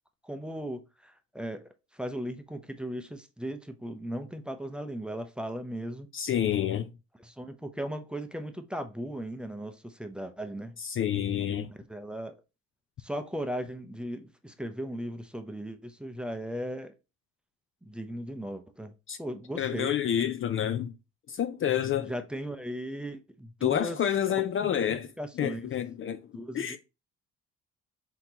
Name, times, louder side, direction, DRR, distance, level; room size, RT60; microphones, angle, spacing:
voice 1, 0.2-6.1 7.2-10.8 11.4-12.3 13.0-16.9 17.8-18.9 19.2-19.9 22.0-24.0 24.6-25.7 26.3-26.8, equal, 5° right, 0.6 m, -37 dB
voice 2, 6.1-6.9 10.8-11.7 19.1-19.2 19.6-20.9 21.3-22.1 23.6-25.1 25.4-26.2 26.5-26.8, left 10 dB, 45° left, 0.4 m, -28 dB
4.3 x 3.9 x 2.8 m
cardioid pair, 90°, 30 cm